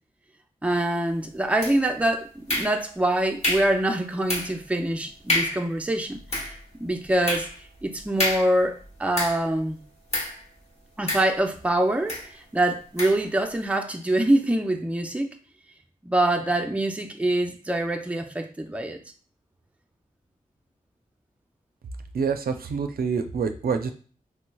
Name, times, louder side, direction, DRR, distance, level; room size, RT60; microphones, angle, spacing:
voice 1, 0.6-6.5 6.8-7.5 7.8-9.8 11.0-15.4 16.0-19.0, right 1 dB, 10° right, 4 dB, 0.4 m, -25 dB
sound 1, 1.6-2.0 2.5-3.0 3.4-3.8 4.3-4.6 4.9-5.0 5.3-5.7 6.1-9.6 10.1-10.4 11.1-11.7 12.1-12.3 13.0-13.3, left 1 dB, 45° left, 1.1 m, -29 dB
voice 2, 22.1-23.9, right 5 dB, 80° right, 6 dB, 0.4 m, -26 dB
3.1 x 3.1 x 2.2 m, 0.40 s
wide cardioid pair, 85°, 15 cm